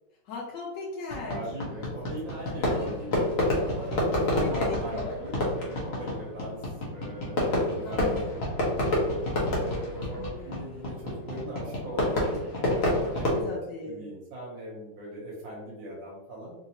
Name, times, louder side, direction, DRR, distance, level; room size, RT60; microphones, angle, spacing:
voice 1, 0.2-1.6 2.4-2.8 4.3-5.2 7.6-8.4 10.1-10.6 13.4-14.1, left 3 dB, 75° left, -3 dB, 1.2 m, -38 dB
Fireworks, 1.1-13.4, left 1 dB, 45° left, 0.8 m, -28 dB
voice 2, 1.2-9.1 9.6-13.5 13.8-16.5, right 1 dB, 75° right, -4 dB, 1.6 m, -40 dB
3.6 x 2.6 x 2.8 m, 0.99 s
omnidirectional pair, 2.1 m